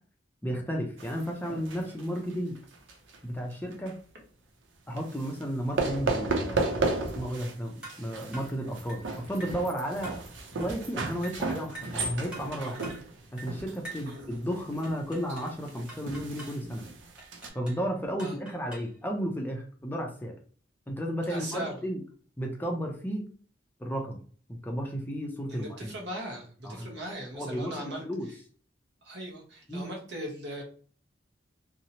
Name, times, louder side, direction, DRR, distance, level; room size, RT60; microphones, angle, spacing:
voice 1, 0.4-2.6 3.2-4.0 4.9-10.1 10.6-12.8 13.3-16.8 17.5-20.3 20.9-22.0 22.4-23.3 23.8-24.2 24.5-25.9 26.6-26.9 27.3-28.3 29.7-29.9, equal, 10° left, 1 dB, 0.4 m, -33 dB
sound 1, 1.0-3.2 3.5-3.9 5.0-5.4 5.8-7.6 7.8-17.5, right 3 dB, 90° right, 0.6 m, -34 dB
sound 2, 7.8-8.1 8.3-8.6 8.9-9.1 9.4-9.6 10.0-10.3 10.6-10.8 11.2-11.5 11.8-12.0 12.3-12.6 12.8-13.1 13.4-13.6 13.8-14.1 14.8-15.6 15.9-16.6 17.2-17.9 18.2-19.0, right 2 dB, 5° right, 1.0 m, -45 dB
voice 2, 21.3-21.8 25.5-28.3 29.0-30.6, equal, 65° right, 0 dB, 0.9 m, -39 dB
2.7 x 2.0 x 2.8 m, 0.43 s
head